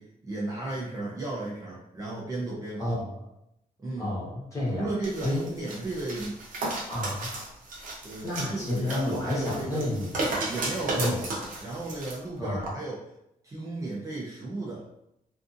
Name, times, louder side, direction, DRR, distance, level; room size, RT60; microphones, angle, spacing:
voice 1, 0.0-3.0 3.8-4.1 4.7-6.4 8.0-9.9 10.4-11.3 11.6-13.0 13.4-14.9, right 2 dB, 20° right, -6 dB, 0.5 m, -34 dB
voice 2, 4.0-4.9 5.2-5.4 6.9-7.4 8.2-10.2 11.0-11.2 12.4-12.6, left 1 dB, 20° left, -5 dB, 0.9 m, -30 dB
sound 1, 5.0-12.2 12.6-12.7, right 2 dB, 60° right, 0.7 m, -34 dB
2.6 x 2.4 x 2.5 m, 0.80 s
wide cardioid pair, 165°, 15 cm